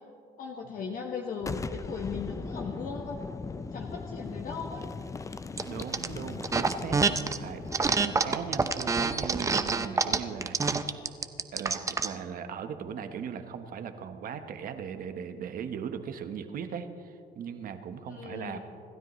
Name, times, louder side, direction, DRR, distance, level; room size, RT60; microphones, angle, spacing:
voice 1, 0.4-3.2 3.7-4.8 18.1-18.6, left 5 dB, 55° left, 1 dB, 1.3 m, -38 dB
Boom, 1.4-11.0, left 4 dB, 20° left, 0.5 m, -40 dB
sound 1, 5.6-6.1 6.4-7.4 7.7-12.1, right 4 dB, 20° right, 0.7 m, -26 dB
voice 2, 5.6-10.8 11.5-18.6, right 7 dB, 55° right, 8 dB, 1.1 m, -38 dB
26.5 x 12.5 x 3.1 m, 2.6 s
cardioid pair, 110°, 17 cm